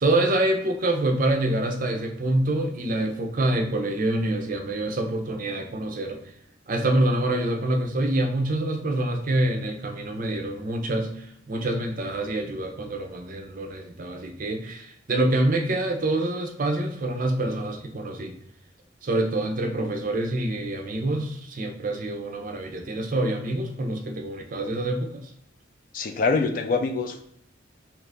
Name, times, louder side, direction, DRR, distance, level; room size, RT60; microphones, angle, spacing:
voice 1, 0.0-6.2 6.7-18.3 19.0-25.3, right 1 dB, 45° right, 4 dB, 0.5 m, -26 dB
voice 2, 25.9-27.2, left 4 dB, 45° left, 6 dB, 0.4 m, -24 dB
2.9 x 2.6 x 3.3 m, 0.75 s
head